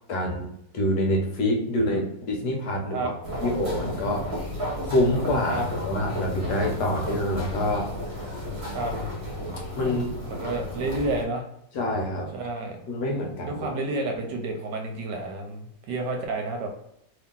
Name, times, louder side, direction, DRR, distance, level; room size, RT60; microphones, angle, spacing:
voice 1, 0.1-0.5 0.7-3.1 3.4-4.3 4.8-7.9 9.7-10.2 11.7-12.3 12.9-13.8, left 1 dB, 70° left, 0 dB, 1.3 m, -26 dB
sound 1, 3.2-11.2, equal, 40° right, 1.1 m, -33 dB
voice 2, 10.2-11.4 12.3-12.8 13.2-16.7, right 2 dB, 70° right, 3 dB, 1.2 m, -30 dB
3.0 x 2.8 x 3.6 m, 0.80 s
omnidirectional pair, 2.0 m